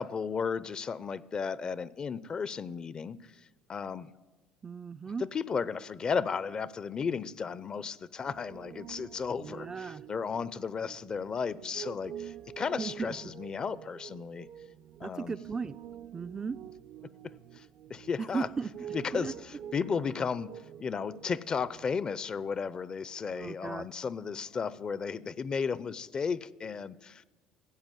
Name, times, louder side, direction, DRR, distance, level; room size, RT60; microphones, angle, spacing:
voice 1, 0.0-3.3 3.7-4.1 5.3-14.5 15.0-15.3 17.5-17.6 17.9-18.5 18.9-20.5 20.8-27.2, left 6 dB, 35° left, 18 dB, 0.6 m, -34 dB
voice 2, 4.6-5.2 9.4-10.0 12.8-13.2 15.0-15.8 16.1-16.6 18.3-18.7 19.1-19.3 23.3-23.9, right 5 dB, 25° right, 12 dB, 0.4 m, -36 dB
Piano, 8.2-21.9, right 9 dB, 70° right, 0.6 m, -47 dB
16.0 x 7.6 x 9.1 m, 1.3 s
supercardioid pair, 90°, 2 cm